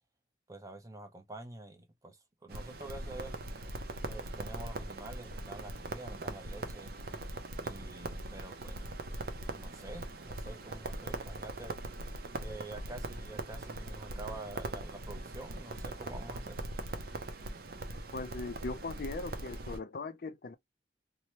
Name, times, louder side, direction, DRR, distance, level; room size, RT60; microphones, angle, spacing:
voice 1, 0.5-3.3 4.1-6.9 7.6-8.8 9.5-11.8 12.3-16.6, right 2 dB, 20° right, 0.7 m, -47 dB
Crackle, 2.5-19.8, right 2 dB, 60° right, 0.7 m, -41 dB
voice 2, 18.1-20.5, left 3 dB, 55° left, 0.5 m, -39 dB
2.8 x 2.2 x 3.0 m
head